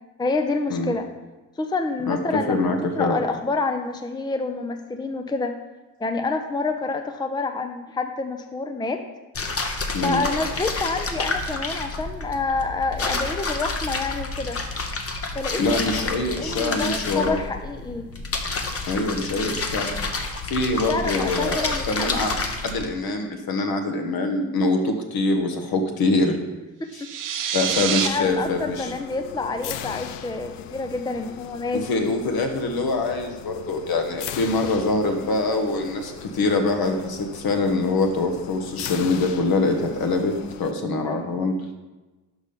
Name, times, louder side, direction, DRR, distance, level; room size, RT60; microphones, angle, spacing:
voice 1, 0.2-1.1 1.6-2.7 3.0-5.5 6.0-9.0 10.0-14.6 15.3-15.8 16.4-18.1 20.9-22.3 26.8-27.1 28.0-31.9 41.0-41.5, left 3 dB, 10° left, 6 dB, 0.6 m, -28 dB
voice 2, 2.5-3.2 9.9-10.2 15.6-17.4 18.8-19.9 20.5-22.3 22.6-26.4 26.9-27.0 27.5-28.9 31.7-41.5, left 2 dB, 55° left, 4 dB, 1.3 m, -24 dB
sound 1, 9.3-22.9, left 3 dB, 35° left, 1.0 m, -29 dB
sound 2, 26.9-28.1, right 8 dB, 50° right, 0.7 m, -26 dB
sound 3, 27.7-40.7, left 9 dB, 80° left, 0.6 m, -39 dB
6.1 x 5.4 x 5.2 m, 1.1 s
hypercardioid pair, 50°, 42 cm